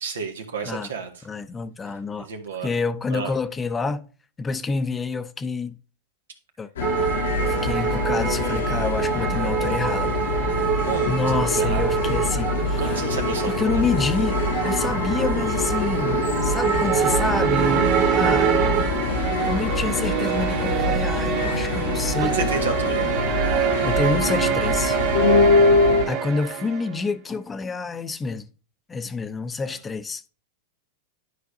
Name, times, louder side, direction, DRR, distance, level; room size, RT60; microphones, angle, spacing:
voice 1, 0.0-1.2 2.2-2.7 3.1-3.3 10.9-11.9 12.8-13.8 22.2-23.1 29.6-29.8, right 5 dB, 90° right, 1.6 m, -31 dB
voice 2, 1.2-2.3 2.6-4.0 4.4-5.8 6.6-6.7 7.4-10.2 11.1-12.9 13.4-14.4 14.6-18.6 19.5-22.4 23.0-23.1 23.8-25.0 26.1-28.5 28.9-30.2, left 4 dB, 20° left, 0.6 m, -28 dB
sound 1, 6.8-26.0, left 3 dB, 85° left, 1.1 m, -24 dB
sound 2, 6.8-21.4 21.7-22.9 23.2-23.7, right 8 dB, 35° right, 0.5 m, -27 dB
sound 3, 16.7-27.1, right 9 dB, 55° right, 1.6 m, -26 dB
11.0 x 5.0 x 2.6 m
hypercardioid pair, 115°, 0 cm